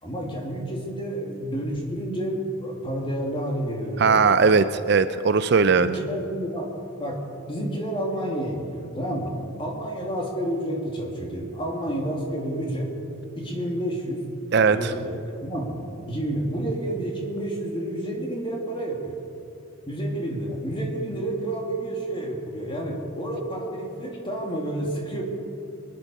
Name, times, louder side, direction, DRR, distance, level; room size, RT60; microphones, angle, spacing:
voice 1, 0.0-4.4 5.7-6.7 7.0-7.2 7.5-12.9 13.4-14.2 14.7-15.8 16.1-19.2 19.9-25.2, right 1 dB, 25° left, -1 dB, 2.4 m, -30 dB
voice 2, 4.0-5.9 14.5-14.9, right 5 dB, 50° right, 11 dB, 0.4 m, -19 dB
23.0 x 10.5 x 5.4 m, 2.7 s
head